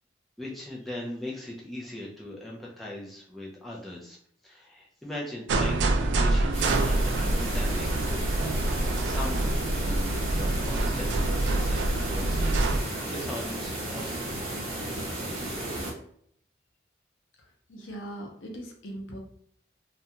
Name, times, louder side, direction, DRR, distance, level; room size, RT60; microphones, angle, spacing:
voice 1, 0.4-4.2 4.4-8.3 9.0-14.4, left 1 dB, ahead, -4 dB, 0.4 m, -40 dB
sound 1, 5.5-12.8, right 2 dB, 65° right, 0.3 m, -26 dB
sound 2, 6.5-15.9, right 1 dB, 35° right, 0.8 m, -34 dB
voice 2, 17.7-19.2, right 1 dB, 85° left, 1 dB, 0.7 m, -39 dB
2.4 x 2.2 x 2.8 m, 0.64 s
head